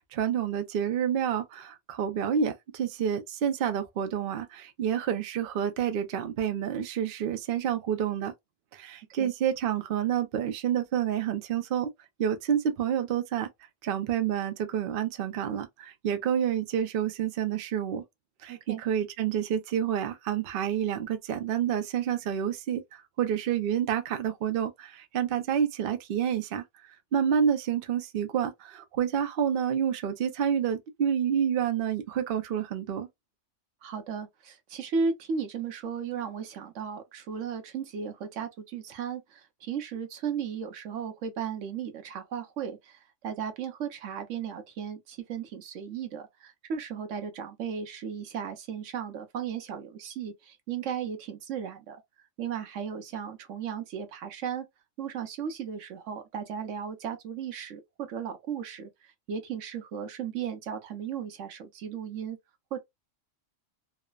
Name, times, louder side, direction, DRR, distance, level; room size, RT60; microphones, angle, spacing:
voice 1, 0.0-8.3 8.7-11.9 12.2-13.5 13.8-18.0 18.4-26.6 27.1-33.1, right 8 dB, 55° right, 0.6 m, -29 dB
voice 2, 18.5-18.8 33.8-52.0 52.4-54.7 55.0-62.4 62.7-62.8, right 7 dB, 75° right, 1.0 m, -35 dB
3.1 x 2.0 x 2.3 m
omnidirectional pair, 1.3 m